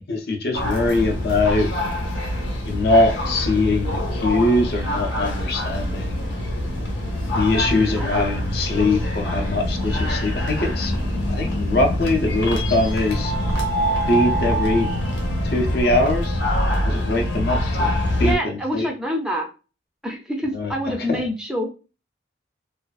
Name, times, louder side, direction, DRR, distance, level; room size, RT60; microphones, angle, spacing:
voice 1, 0.0-1.7 2.6-6.3 7.3-10.9 11.3-13.3 14.1-14.9 15.4-16.4 16.8-17.9 18.2-18.9 20.5-20.7 21.1-21.2, left 2 dB, 55° left, 0.5 m, -22 dB
sound 1, 0.5-18.4, left 1 dB, 80° left, 0.8 m, -24 dB
voice 2, 8.0-8.3 18.2-19.5 20.0-21.7, equal, 5° right, 0.4 m, -26 dB
2.4 x 2.3 x 2.3 m
head